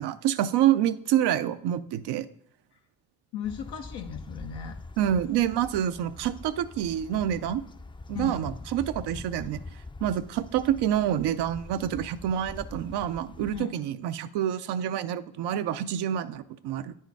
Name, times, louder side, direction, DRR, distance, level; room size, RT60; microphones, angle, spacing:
voice 1, 0.0-2.3 5.0-7.6 8.1-9.6 10.0-16.9, right 11 dB, 85° right, 12 dB, 0.5 m, -27 dB
voice 2, 3.3-4.8 8.1-8.5 13.5-13.8, left 7 dB, 90° left, 3 dB, 0.6 m, -36 dB
sound 1, 3.4-13.6, left 3 dB, 15° left, 0.3 m, -43 dB
9.7 x 4.5 x 4.6 m, 0.71 s
supercardioid pair, 45°, 39 cm